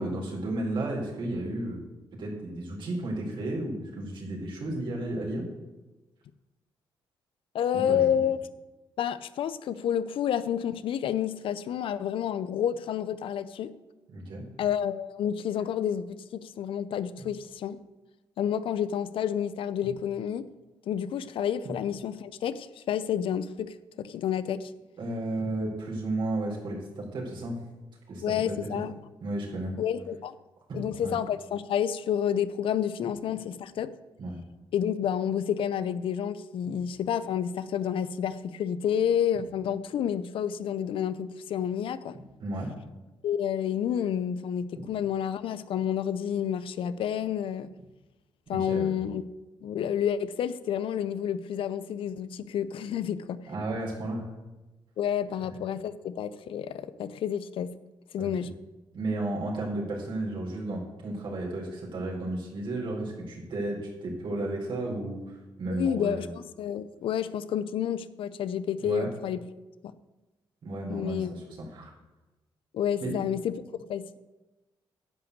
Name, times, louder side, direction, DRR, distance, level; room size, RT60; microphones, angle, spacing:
voice 1, 0.0-1.8 2.2-5.4 7.9-8.1 14.1-14.4 19.8-19.9 21.6-21.7 25.0-27.6 28.1-28.8 29.2-29.8 30.7-31.1 33.0-33.1 34.2-34.4 42.4-42.7 44.8-44.9 48.6-48.9 53.5-54.3 58.2-58.3 58.9-66.3 68.8-69.1 70.6-71.9 73.0-73.2, right 2 dB, 60° right, -2 dB, 4.1 m, -33 dB
voice 2, 7.5-8.4 9.0-13.7 14.6-17.8 18.4-20.4 20.9-24.7 28.2-28.9 29.8-30.3 30.7-33.9 34.7-42.2 43.2-47.7 48.5-49.2 49.6-53.4 55.0-57.7 58.1-58.5 65.7-69.4 70.9-71.3 72.7-73.5 73.9-74.2, left 9 dB, 75° left, 15 dB, 0.6 m, -29 dB
10.5 x 5.8 x 8.0 m, 1.1 s
cardioid pair, 80°, 9 cm